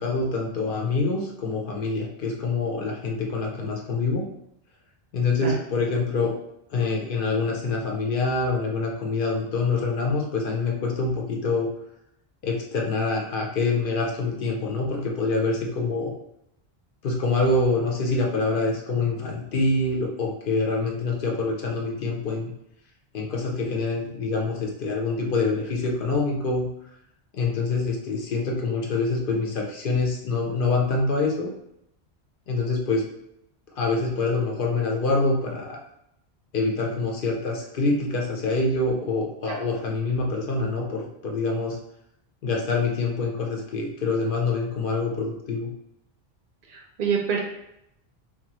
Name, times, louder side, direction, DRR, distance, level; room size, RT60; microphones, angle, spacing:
voice 1, 0.0-4.3 5.1-6.3 6.7-11.7 12.4-16.1 17.0-22.5 23.1-26.7 27.3-31.5 32.5-33.0 33.8-35.8 36.5-41.8 42.4-45.7, left 3 dB, 60° left, -1 dB, 0.7 m, -25 dB
voice 2, 46.7-47.4, right 6 dB, 60° right, -1 dB, 0.7 m, -26 dB
2.7 x 2.3 x 2.9 m, 0.80 s
omnidirectional pair, 1.1 m